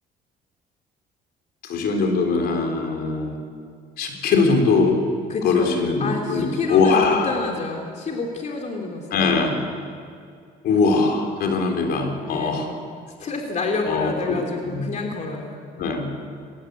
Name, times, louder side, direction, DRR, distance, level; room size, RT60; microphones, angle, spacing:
voice 1, 1.6-3.4 4.0-5.0 5.4-7.3 9.1-9.6 10.6-12.7 13.9-14.4 14.6-14.9 15.8-16.1, left 4 dB, 70° left, 3 dB, 3.7 m, -21 dB
voice 2, 5.3-5.7 6.0-9.5 12.3-12.7 13.2-15.6, left 3 dB, 45° left, 1 dB, 3.1 m, -29 dB
21.0 x 18.5 x 8.3 m, 2.2 s
cardioid pair, 110°, 17 cm